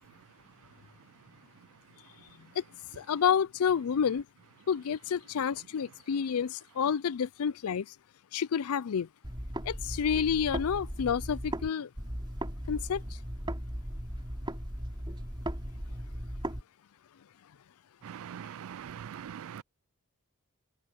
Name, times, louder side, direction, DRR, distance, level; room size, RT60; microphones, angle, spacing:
voice 1, 3.0-4.3 4.7-7.9 8.3-9.1 9.6-11.9 12.7-13.0, left 7 dB, 75° left, 0.4 m, -29 dB
sound 1, 9.2-11.7 12.0-16.6, equal, 20° right, 3.8 m, -37 dB
voice 2, 18.0-19.6, right 8 dB, 65° right, 0.4 m, -42 dB
head